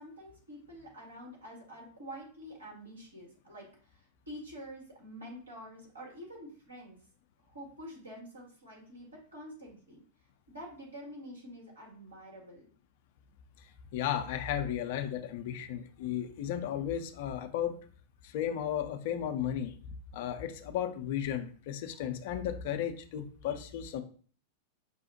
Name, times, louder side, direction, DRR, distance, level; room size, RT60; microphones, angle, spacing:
voice 1, 0.0-7.0 7.4-10.0 10.5-12.7, equal, 75° right, -3 dB, 1.4 m, -47 dB
voice 2, 13.9-17.8 18.2-19.7 20.1-24.0, left 10 dB, 50° left, 8 dB, 0.4 m, -34 dB
5.6 x 2.0 x 2.8 m, 0.44 s
figure-of-eight pair, 90°, 0 cm